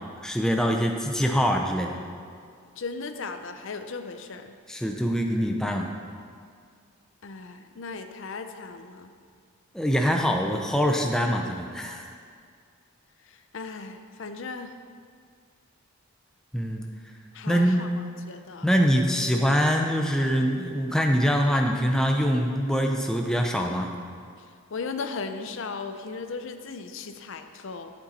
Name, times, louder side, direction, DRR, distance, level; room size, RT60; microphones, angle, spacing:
voice 1, 0.2-2.0 4.7-5.9 9.7-12.1 16.5-16.9 17.5-17.9 18.6-23.9, equal, 5° left, 2 dB, 0.5 m, -24 dB
voice 2, 2.8-4.5 7.2-9.1 13.3-14.7 17.3-17.9 18.3-18.7 24.7-27.9, left 4 dB, 60° left, 8 dB, 0.5 m, -36 dB
12.0 x 7.5 x 4.2 m, 2.2 s
head